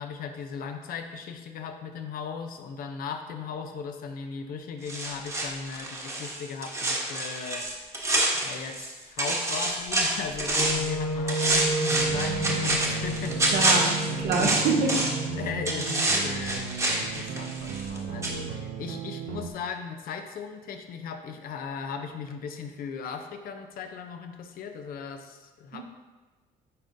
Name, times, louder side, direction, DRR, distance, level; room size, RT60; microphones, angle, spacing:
voice 1, 0.0-8.1 8.4-13.4 14.3-14.5 15.3-16.7 17.0-25.8, left 6 dB, 60° left, 6 dB, 0.7 m, -37 dB
sound 1, 4.9-8.9 9.2-10.9 11.3-15.3 15.6-18.0 18.2-18.3, right 1 dB, 15° right, 1.1 m, -27 dB
Wind instrument woodwind instrument, 10.5-16.6, right 1 dB, 30° left, 0.9 m, -32 dB
sound 2, 11.9-19.5, right 7 dB, 85° right, 0.6 m, -36 dB
voice 2, 13.5-15.1 25.7-25.8, right 4 dB, 70° right, 2 dB, 0.9 m, -26 dB
9.6 x 3.7 x 2.7 m, 1.3 s
cardioid pair, 110°, 17 cm